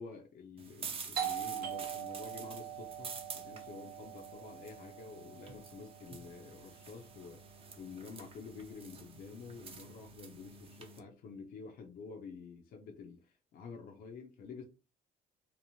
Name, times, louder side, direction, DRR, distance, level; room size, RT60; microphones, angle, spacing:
voice 1, 0.0-7.4 7.8-14.6, left 5 dB, 60° left, 2 dB, 0.5 m, -49 dB
sound 1, 0.6-11.0, right 5 dB, 35° right, 0.6 m, -49 dB
Doorbell, 1.2-6.5, right 10 dB, 65° right, 0.7 m, -42 dB
3.0 x 2.0 x 2.7 m, 0.31 s
cardioid pair, 110°, 17 cm